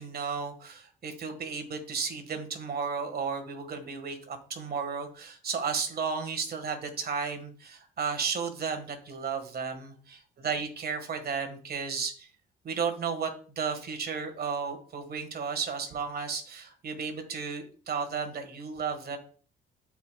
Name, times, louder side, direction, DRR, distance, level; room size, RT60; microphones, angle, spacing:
voice 1, 0.0-12.3 12.6-13.3 13.6-19.2, right 5 dB, 50° right, 6 dB, 1.6 m, -33 dB
12.0 x 4.9 x 2.3 m, 0.42 s
cardioid pair, 90°, 20 cm